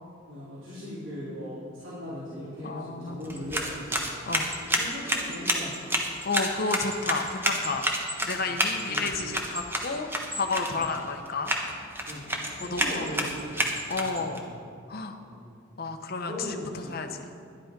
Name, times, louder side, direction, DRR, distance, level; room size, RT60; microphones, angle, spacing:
voice 1, 0.3-5.9 8.5-9.2 10.7-10.9 12.1-14.4 15.2-15.4 16.2-17.1, equal, 80° right, -11 dB, 3.5 m, -39 dB
voice 2, 2.6-3.4 4.3-4.5 6.2-7.9 8.2-10.1 10.3-11.5 12.6-13.3 13.9-14.4 14.9-15.2 15.8-17.2, left 4 dB, 50° left, 5 dB, 0.9 m, -31 dB
sound 1, 3.2-14.4, right 1 dB, 10° right, 1.1 m, -30 dB
11.5 x 10.5 x 5.2 m, 2.3 s
head